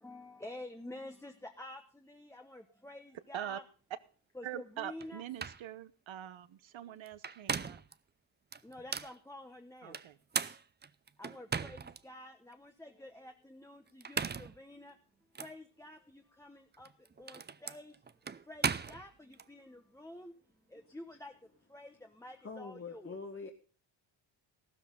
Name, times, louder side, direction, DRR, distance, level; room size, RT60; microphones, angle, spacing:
voice 1, 0.0-3.6 4.3-5.2 6.8-7.0 8.6-10.0 11.2-15.0 15.4-23.2, left 1 dB, 5° left, 4 dB, 1.1 m, -50 dB
voice 2, 4.4-7.8 9.8-10.6, right 11 dB, 65° right, 15 dB, 1.1 m, -44 dB
sound 1, 5.0-5.1 5.4-5.6 7.1-7.9 8.5-9.1 9.9-12.0 12.5-12.6 13.9-14.6 15.3-15.5 16.7-19.5, right 6 dB, 20° right, 0.5 m, -37 dB
voice 3, 22.4-23.5, left 4 dB, 25° left, 1 dB, 1.6 m, -44 dB
14.0 x 13.0 x 3.8 m, 0.40 s
cardioid pair, 105°, 50 cm